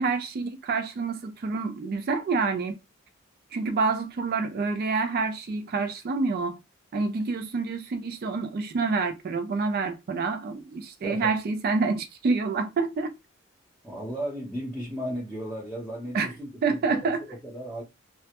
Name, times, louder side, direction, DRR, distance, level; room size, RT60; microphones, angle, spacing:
voice 1, 0.0-2.8 3.5-6.6 6.9-13.1 16.1-16.3 16.6-17.2, right 4 dB, 50° right, 0.4 m, -27 dB
voice 2, 11.0-11.3 13.8-17.8, right 1 dB, ahead, 0.6 m, -35 dB
2.1 x 2.1 x 2.8 m
head